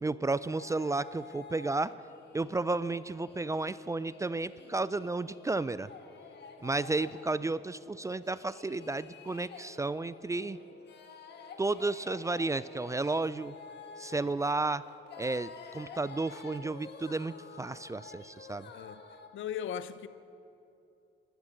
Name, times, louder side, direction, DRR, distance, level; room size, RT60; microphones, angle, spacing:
voice 1, 0.0-1.9 2.3-5.9 6.6-10.6 11.6-13.6 14.0-14.8 15.2-18.7, right 3 dB, 15° right, 0.3 m, -32 dB
sound 1, 0.5-19.3, left 5 dB, 60° left, 1.4 m, -50 dB
voice 2, 18.7-19.0 19.3-20.1, left 9 dB, 75° left, 0.7 m, -37 dB
15.0 x 12.0 x 6.4 m
cardioid pair, 90°, 20 cm